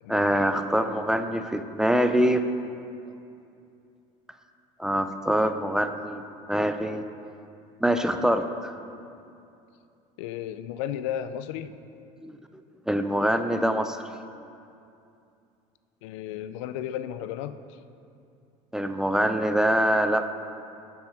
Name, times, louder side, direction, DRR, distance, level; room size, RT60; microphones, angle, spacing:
voice 1, 0.1-2.4 4.8-6.2 6.5-7.0 7.8-8.7 12.2-12.3 12.9-14.0 18.7-20.3, equal, 5° right, 8 dB, 0.4 m, -24 dB
voice 2, 10.2-11.7 16.0-17.8, left 10 dB, 85° left, 12 dB, 0.5 m, -34 dB
7.5 x 7.2 x 6.2 m, 2.6 s
supercardioid pair, 120°, 15 cm